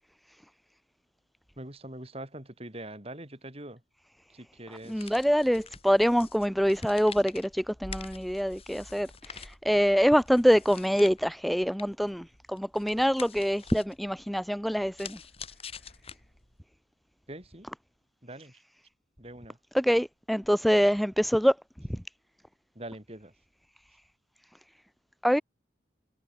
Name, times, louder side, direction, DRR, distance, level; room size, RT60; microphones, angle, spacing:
voice 1, 1.6-3.8 4.3-5.2 17.3-17.7 18.2-18.6 19.2-19.6 22.7-23.3, right 1 dB, 30° right, 4.7 m, -43 dB
sound 1, 4.7-16.6, left 5 dB, 30° left, 5.0 m, -47 dB
voice 2, 4.9-15.2 19.7-21.6 21.9-22.0 25.2-25.4, equal, ahead, 0.3 m, -25 dB
head